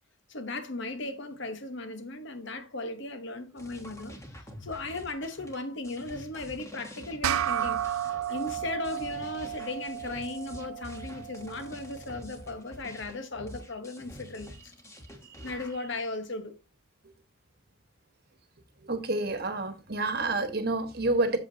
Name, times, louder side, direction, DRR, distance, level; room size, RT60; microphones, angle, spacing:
voice 1, 0.3-4.2 4.6-14.7 15.4-16.6, left 2 dB, 60° left, 1.1 m, -37 dB
sound 1, 3.6-15.8, equal, 15° left, 1.1 m, -47 dB
sound 2, 7.2-12.0, right 10 dB, 85° right, 0.4 m, -33 dB
voice 2, 18.8-21.4, right 2 dB, 50° right, 1.2 m, -29 dB
8.1 x 7.2 x 2.8 m
head